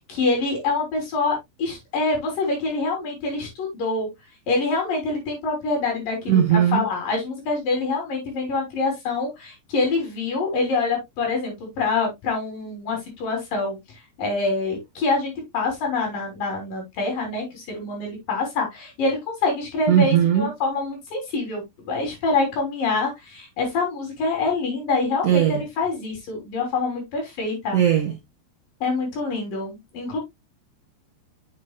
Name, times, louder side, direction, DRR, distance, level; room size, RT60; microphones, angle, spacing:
voice 1, 0.0-4.1 4.5-13.8 14.2-27.8 28.8-30.2, left 3 dB, 60° left, 5.2 m, -26 dB
voice 2, 6.3-6.8 19.9-20.5 25.2-25.6 27.7-28.1, right 9 dB, 70° right, 1.5 m, -18 dB
8.2 x 7.4 x 2.4 m
omnidirectional pair, 4.4 m